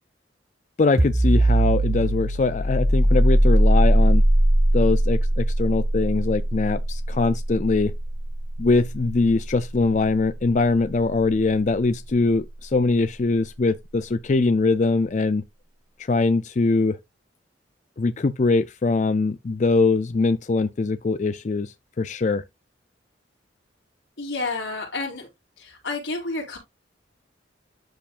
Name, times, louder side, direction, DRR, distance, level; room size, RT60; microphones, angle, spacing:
voice 1, 0.8-4.2 4.7-7.9 8.6-15.4 16.0-17.0 18.0-22.4, left 3 dB, 40° left, 0.4 m, -22 dB
sound 1, 1.0-12.4, right 1 dB, 35° right, 1.1 m, -21 dB
voice 2, 24.2-25.3 25.6-26.6, left 3 dB, 85° left, 4.9 m, -30 dB
12.5 x 4.6 x 2.5 m
head